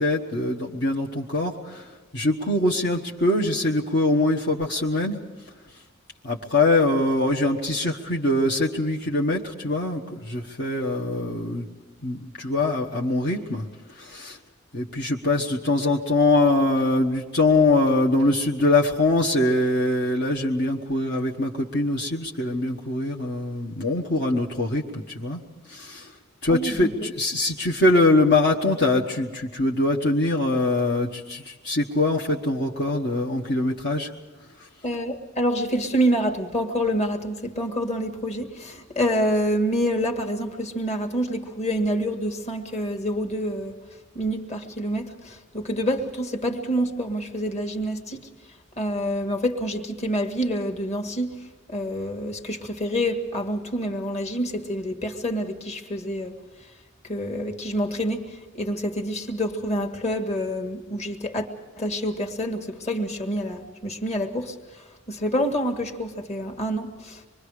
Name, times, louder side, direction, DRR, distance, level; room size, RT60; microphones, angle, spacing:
voice 1, 0.0-1.9 2.1-5.2 6.2-11.6 12.0-13.6 14.0-14.4 14.7-25.4 25.7-26.1 26.4-34.1, left 2 dB, 55° left, 1.4 m, -23 dB
voice 2, 26.5-27.1 34.8-43.8 44.2-48.2 48.8-51.3 51.7-56.3 57.0-61.5 61.8-64.6 65.1-67.3, equal, 30° left, 1.9 m, -27 dB
26.0 x 22.5 x 5.0 m
head